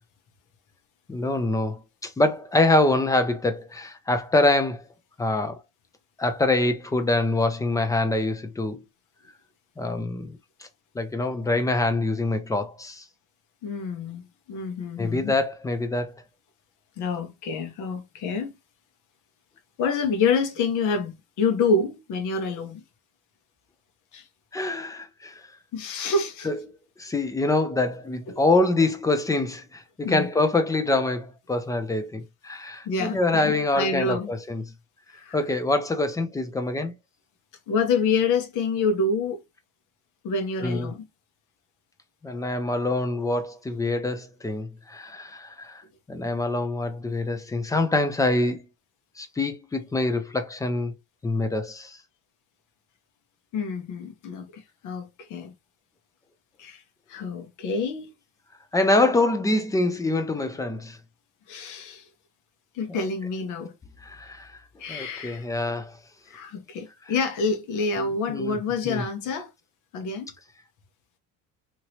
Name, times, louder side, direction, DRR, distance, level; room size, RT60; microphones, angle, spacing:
voice 1, 1.1-4.8 5.2-5.6 6.2-8.8 9.8-10.4 11.0-13.0 15.0-16.1 24.5-25.4 26.5-26.6 27.0-34.6 35.3-36.9 40.6-40.9 42.2-45.8 46.1-48.6 49.2-50.9 51.2-52.0 58.7-61.0 64.0-64.6 64.9-65.9 68.0-68.6 68.9-69.0, left 2 dB, 10° left, 0.3 m, -25 dB
voice 2, 13.6-15.3 17.0-18.5 19.8-22.8 24.1-24.2 25.7-26.5 30.0-30.3 32.8-34.3 35.1-35.4 37.7-39.4 40.2-41.0 53.5-55.5 56.6-56.8 57.1-58.1 61.5-62.1 62.7-63.7 64.8-65.5 66.3-69.5 69.9-70.3, left 4 dB, 60° left, 1.0 m, -27 dB
3.0 x 2.8 x 2.8 m
cardioid pair, 145°, 33 cm